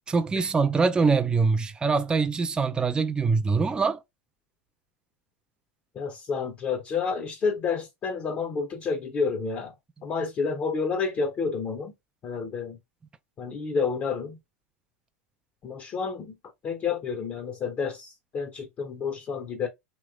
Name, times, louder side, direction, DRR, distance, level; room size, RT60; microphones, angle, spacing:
voice 1, 0.1-4.0, right 4 dB, 10° right, 0.3 m, -23 dB
voice 2, 5.9-9.7 10.0-11.9 12.2-12.8 13.4-14.4 15.6-16.3 16.6-19.7, left 5 dB, 30° left, 0.7 m, -29 dB
3.0 x 3.0 x 2.3 m
hypercardioid pair, 110°, 8 cm